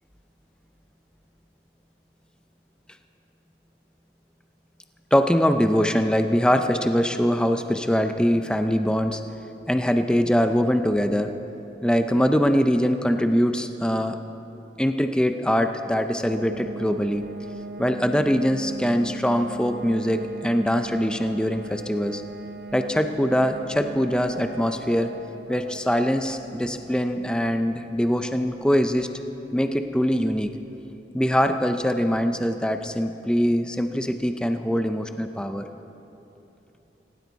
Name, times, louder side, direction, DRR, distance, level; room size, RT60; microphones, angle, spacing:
voice 1, 5.1-9.2 9.7-11.3 11.8-14.2 14.8-17.2 17.8-22.2 22.7-25.1 25.5-29.1 29.5-30.5 31.1-35.6, equal, 5° left, 7 dB, 0.5 m, -23 dB
sound 1, 16.3-30.9, right 2 dB, 80° right, 0.6 m, -40 dB
18.0 x 17.5 x 4.0 m, 3.0 s
head